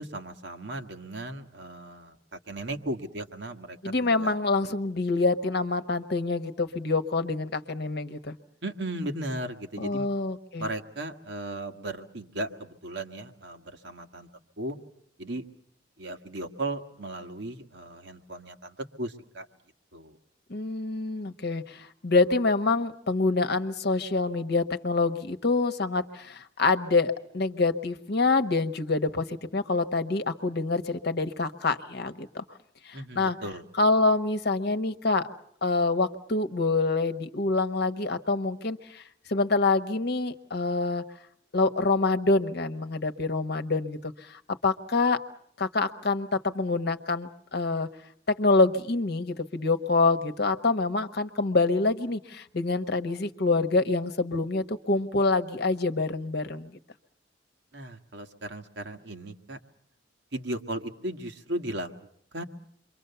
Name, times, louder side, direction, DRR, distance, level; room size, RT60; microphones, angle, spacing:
voice 1, 0.0-3.8 4.0-4.4 8.6-10.1 10.6-14.3 14.6-14.8 15.2-15.5 16.0-19.4 19.9-20.2 32.9-33.6 57.7-59.6 60.3-61.9 62.3-62.4, right 1 dB, 65° right, 5 dB, 1.6 m, -36 dB
voice 2, 3.8-8.3 9.8-10.7 20.5-32.4 32.8-33.4 33.8-35.3 35.6-39.0 39.3-41.0 41.5-45.2 45.6-47.9 48.3-56.7, left 3 dB, 60° left, 10 dB, 1.1 m, -26 dB
27.5 x 24.0 x 6.9 m, 0.66 s
head